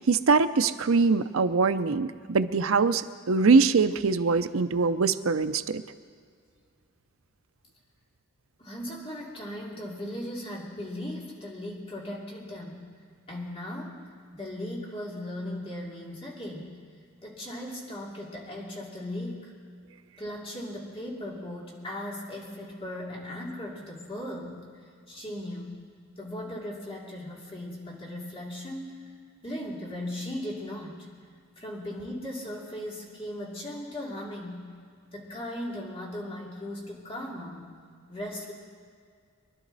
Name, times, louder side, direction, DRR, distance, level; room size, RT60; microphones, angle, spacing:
voice 1, 0.1-5.8, right 4 dB, 70° right, 10 dB, 0.6 m, -23 dB
voice 2, 8.6-12.9 13.3-14.0 14.3-16.8 17.2-19.5 20.2-24.7 25.1-25.8 26.2-29.0 29.4-31.1 31.6-34.6 35.1-37.7 38.1-38.5, left 1 dB, 25° left, -3 dB, 2.9 m, -37 dB
24.0 x 11.5 x 4.1 m, 2.2 s
head